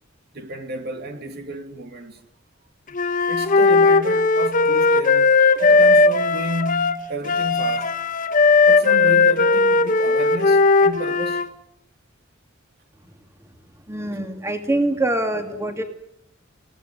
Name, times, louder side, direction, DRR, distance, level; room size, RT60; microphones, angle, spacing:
voice 1, 0.3-2.2 3.3-8.0 8.7-11.5, right 1 dB, 55° right, 2.6 m, -32 dB
Wind instrument woodwind instrument, 2.9-11.5, left 4 dB, 40° left, 1.3 m, -17 dB
voice 2, 13.9-15.8, right 1 dB, 15° right, 2.7 m, -24 dB
27.0 x 18.0 x 9.8 m
head